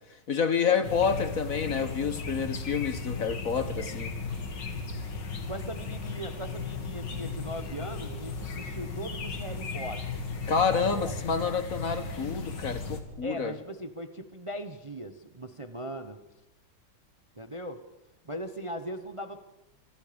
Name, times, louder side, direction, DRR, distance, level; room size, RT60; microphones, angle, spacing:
voice 1, 0.3-4.1 10.5-13.5, left 6 dB, 50° left, 1.5 m, -28 dB
sound 1, 0.8-13.0, left 4 dB, 70° left, 2.9 m, -36 dB
voice 2, 5.5-10.2 10.7-11.1 13.2-16.2 17.4-17.8 18.2-19.4, equal, 20° right, 0.9 m, -39 dB
27.5 x 24.5 x 5.2 m
omnidirectional pair, 2.0 m